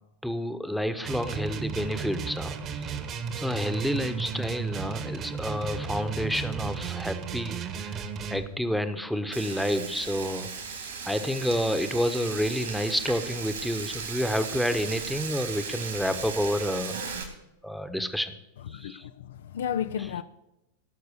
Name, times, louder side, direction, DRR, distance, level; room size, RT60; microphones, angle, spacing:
voice 1, 0.2-3.0 3.3-8.0 8.3-17.0 17.6-18.3 18.7-19.0, equal, ahead, 1.1 m, -29 dB
sound 1, 1.0-8.5, right 6 dB, 35° right, 1.5 m, -34 dB
Frying (food), 9.3-17.2, right 6 dB, 65° right, 3.4 m, -37 dB
voice 2, 18.7-20.2, left 9 dB, 60° left, 0.6 m, -32 dB
17.0 x 6.7 x 6.8 m
figure-of-eight pair, 90°, 0 cm